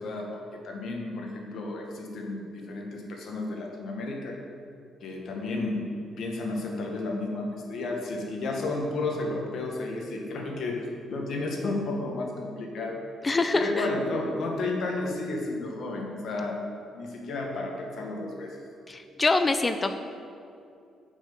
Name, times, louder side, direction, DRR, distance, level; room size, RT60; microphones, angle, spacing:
voice 1, 0.0-4.4 5.0-10.8 11.1-13.0 13.5-16.6 16.9-18.6, left 2 dB, 70° left, 0 dB, 1.6 m, -32 dB
voice 2, 13.2-13.9 18.9-19.9, left 3 dB, 25° left, 8 dB, 0.4 m, -25 dB
7.1 x 5.8 x 7.0 m, 2.5 s
cardioid pair, 90°, 0 cm